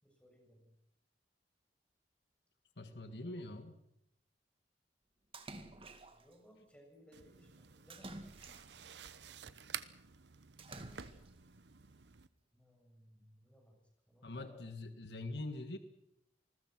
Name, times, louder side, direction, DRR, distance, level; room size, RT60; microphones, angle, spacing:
voice 1, 0.0-0.7 2.9-3.5 6.1-8.2 12.5-13.8 14.1-14.8, equal, 5° left, 1 dB, 7.4 m, -62 dB
voice 2, 2.8-3.7 14.2-15.8, left 2 dB, 65° left, 9 dB, 1.6 m, -44 dB
Splash splatter, 5.3-6.3 7.9-9.0 10.6-11.4, right 2 dB, 30° right, 2.2 m, -51 dB
sound 1, 7.1-12.3, right 8 dB, 75° right, 1.0 m, -51 dB
27.0 x 20.5 x 6.2 m, 0.82 s
head